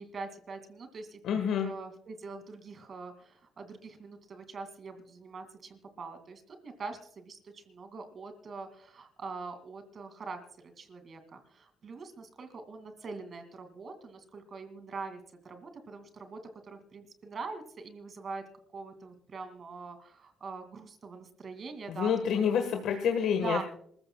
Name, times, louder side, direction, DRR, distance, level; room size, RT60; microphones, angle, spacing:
voice 1, 0.0-1.2 1.5-18.4 18.7-22.4 23.4-23.6, right 4 dB, 50° right, 7 dB, 2.4 m, -43 dB
voice 2, 1.2-1.7 21.9-23.6, left 7 dB, 80° left, 5 dB, 1.4 m, -28 dB
26.5 x 14.5 x 2.3 m, 0.65 s
cardioid pair, 90°, 0 cm